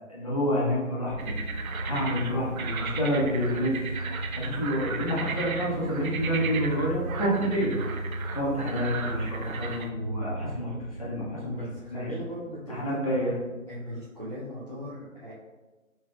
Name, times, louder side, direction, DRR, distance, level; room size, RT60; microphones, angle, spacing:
voice 1, 0.1-1.4 1.8-3.8 4.3-7.7 8.3-11.6 11.9-12.1 12.7-13.4, equal, 25° left, -7 dB, 0.7 m, -28 dB
sound 1, 1.1-13.0, right 1 dB, 5° left, 1.3 m, -36 dB
sound 2, 1.2-9.9, right 5 dB, 80° right, 0.6 m, -37 dB
voice 2, 11.4-13.0 13.7-15.3, equal, 30° right, -9 dB, 0.5 m, -39 dB
5.4 x 2.8 x 2.3 m, 1.2 s
figure-of-eight pair, 170°, 41 cm